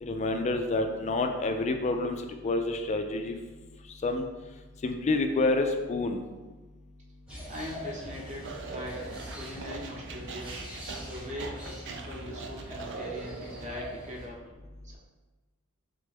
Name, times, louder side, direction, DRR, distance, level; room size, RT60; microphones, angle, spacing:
voice 1, 0.0-3.4 4.0-4.3 4.8-6.2, left 2 dB, 35° left, 6 dB, 0.3 m, -28 dB
sound 1, 7.3-14.3, equal, 5° right, 0.8 m, -43 dB
voice 2, 7.5-10.6 11.0-14.4 14.8-15.0, equal, 35° right, -2 dB, 0.8 m, -41 dB
sound 2, 8.4-13.8, right 4 dB, 55° right, 0.4 m, -42 dB
3.7 x 3.3 x 3.4 m, 1.2 s
head